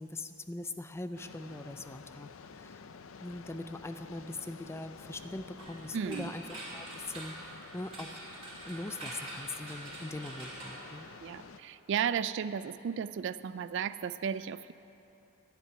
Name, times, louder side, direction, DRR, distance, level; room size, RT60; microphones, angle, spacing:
voice 1, 0.0-2.3 2.5-2.8 3.2-8.2 8.7-11.1, left 2 dB, 10° left, 9 dB, 0.4 m, -41 dB
sound 1, 1.1-11.6, left 5 dB, 70° left, 0.5 m, -51 dB
sound 2, 5.6-11.6, right 2 dB, 25° right, 3.0 m, -46 dB
voice 2, 5.9-6.3 11.2-14.7, right 7 dB, 60° right, 14 dB, 0.3 m, -34 dB
11.0 x 7.5 x 9.5 m, 2.8 s
head